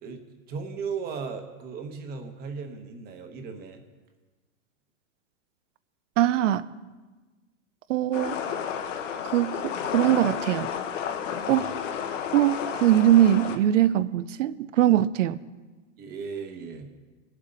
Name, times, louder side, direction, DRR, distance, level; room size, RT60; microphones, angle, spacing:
voice 1, 0.0-3.8 11.4-12.0 16.0-16.9, right 5 dB, 25° right, 5 dB, 1.1 m, -37 dB
voice 2, 6.2-6.7 7.9-8.3 9.3-10.7 11.5-11.7 12.3-15.4, right 12 dB, 80° right, 15 dB, 0.6 m, -22 dB
sound 1, 8.1-13.6, left 8 dB, 80° left, 1.2 m, -32 dB
20.0 x 7.6 x 3.9 m, 1.3 s
supercardioid pair, 155°, 37 cm